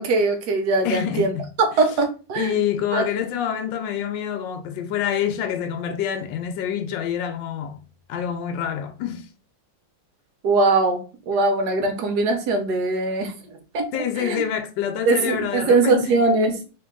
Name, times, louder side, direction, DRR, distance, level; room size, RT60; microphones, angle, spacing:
voice 1, 0.0-1.3 1.6-2.5 2.9-3.0 10.4-13.3 13.7-13.8 14.2-14.4 15.1-16.6, right 3 dB, 65° right, 1.2 m, -21 dB
voice 2, 0.8-1.5 2.4-7.8 8.1-9.3 13.9-16.1, left 9 dB, 75° left, 1.3 m, -26 dB
3.9 x 2.8 x 3.6 m
omnidirectional pair, 2.0 m